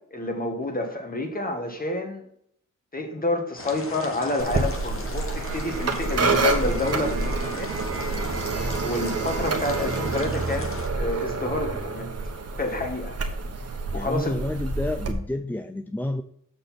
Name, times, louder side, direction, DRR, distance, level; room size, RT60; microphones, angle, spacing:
voice 1, 0.1-2.2 2.9-7.7 8.5-12.1 12.6-13.1 13.9-14.3, left 2 dB, 30° left, 4 dB, 1.7 m, -29 dB
sound 1, 3.6-10.9, left 2 dB, 45° left, 1.5 m, -37 dB
sound 2, 4.4-15.1, right 3 dB, 50° right, 1.2 m, -28 dB
voice 2, 13.9-16.2, left 1 dB, 5° left, 8 dB, 0.4 m, -29 dB
6.9 x 6.5 x 4.2 m, 0.68 s
wide cardioid pair, 90°, 32 cm